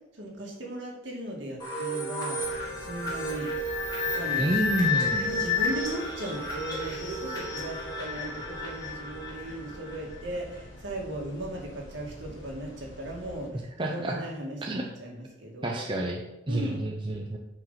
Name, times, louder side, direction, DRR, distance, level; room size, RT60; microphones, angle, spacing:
voice 1, 0.1-2.4 2.8-3.5 4.0-4.8 5.2-15.8 16.5-16.9, right 1 dB, 65° right, -1 dB, 2.2 m, -37 dB
sound 1, 1.6-10.2, left 3 dB, 20° left, 2.5 m, -31 dB
sound 2, 2.4-13.5, equal, 70° left, 2.1 m, -47 dB
voice 2, 4.4-5.3 13.8-14.2 14.6-14.8 15.6-16.2 16.5-17.4, right 1 dB, 25° right, 0 dB, 0.7 m, -29 dB
9.1 x 5.1 x 5.7 m, 0.97 s
head